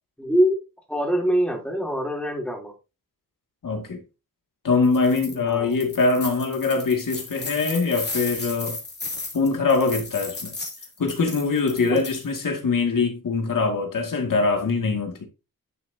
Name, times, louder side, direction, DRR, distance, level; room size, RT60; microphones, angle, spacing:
voice 1, 0.2-0.6 0.9-2.7 5.3-5.8 11.7-12.0, equal, 5° left, 3.3 m, -24 dB
voice 2, 3.6-4.0 4.6-8.8 9.3-10.5 11.0-15.2, left 4 dB, 65° left, 2.3 m, -23 dB
sound 1, 4.8-5.3 5.7-12.4, left 3 dB, 30° left, 2.7 m, -35 dB
11.0 x 6.1 x 2.8 m
wide cardioid pair, 125°, 34 cm